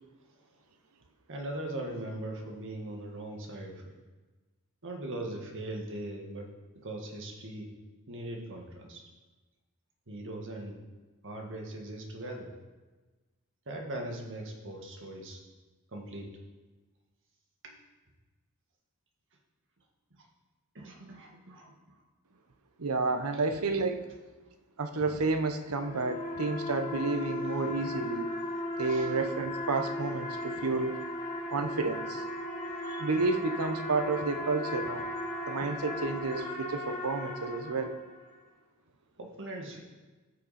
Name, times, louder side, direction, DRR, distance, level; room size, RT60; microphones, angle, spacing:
voice 1, 1.3-3.9 4.8-6.5 6.8-7.7 8.1-9.0 10.1-10.8 11.2-12.5 13.7-15.4 15.9-16.3 17.6-17.7 20.2-20.3 20.8-22.0 28.9-29.1 39.2-39.8, right 1 dB, 60° right, 1 dB, 1.8 m, -40 dB
voice 2, 22.8-24.1 24.8-28.3 28.8-31.0 31.5-32.2 32.9-35.1 35.5-37.9, right 3 dB, 75° right, 8 dB, 0.9 m, -31 dB
sound 1, 25.5-38.2, left 1 dB, 35° left, 1.7 m, -37 dB
14.5 x 6.6 x 4.2 m, 1.3 s
head